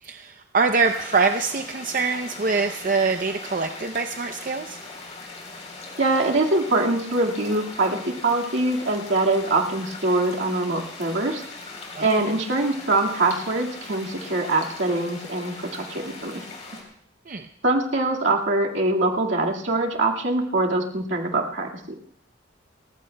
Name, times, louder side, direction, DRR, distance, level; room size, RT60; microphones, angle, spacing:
voice 1, 0.0-4.8 11.9-12.2 17.3-17.5, right 4 dB, 45° right, 6 dB, 0.6 m, -24 dB
sound 1, 0.8-16.8, left 3 dB, 35° left, 3.7 m, -40 dB
voice 2, 6.0-8.0 8.2-11.4 12.0-16.4 17.6-21.7, right 2 dB, 70° right, 0 dB, 1.9 m, -23 dB
29.5 x 15.0 x 2.2 m, 0.65 s
head